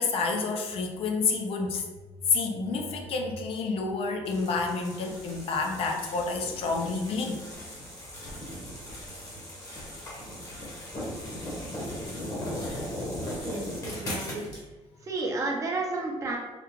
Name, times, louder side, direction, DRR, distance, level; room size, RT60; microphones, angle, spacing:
voice 1, 0.0-1.8 2.3-7.4, left 4 dB, 60° left, 2 dB, 0.5 m, -29 dB
sound 1, 4.2-14.6, left 1 dB, 30° left, 0.9 m, -38 dB
voice 2, 13.4-14.5 15.0-16.4, right 2 dB, 30° right, 0 dB, 0.5 m, -31 dB
3.5 x 2.3 x 3.0 m, 1.2 s
cardioid pair, 170°, 11 cm